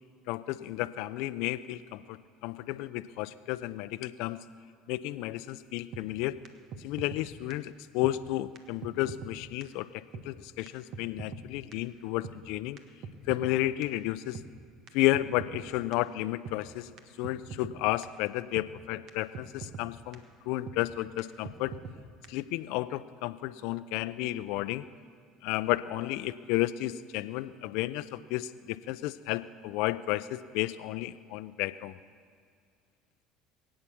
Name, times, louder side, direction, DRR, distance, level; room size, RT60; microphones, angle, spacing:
voice 1, 0.3-2.2 2.4-4.4 4.9-6.4 6.8-12.8 13.3-14.4 14.9-16.9 17.2-20.2 20.5-21.7 22.3-24.9 25.4-32.0, left 16 dB, 70° left, 14 dB, 0.5 m, -32 dB
sound 1, 5.9-6.0 6.4-6.5 6.7-7.2 7.5-7.6 8.0-8.1 8.6-8.7 8.8-9.3 9.6-9.7 10.1-10.3 10.7-10.8 10.9-11.4 11.7-11.8 12.2-12.4 12.8-13.5 13.8-13.9 14.3-14.5 14.9-15.0 15.1-15.6 15.9-16.0 16.5-16.6 17.0-17.1 17.2-17.8 18.0-18.1 18.6-18.7 19.1-19.2 19.3-19.9 20.1-20.2 20.7-20.8 21.2-21.3 21.5-22.0 22.2-22.3, right 5 dB, 60° right, 1.4 m, -42 dB
22.5 x 8.8 x 7.1 m, 2.2 s
hypercardioid pair, 75°, 0 cm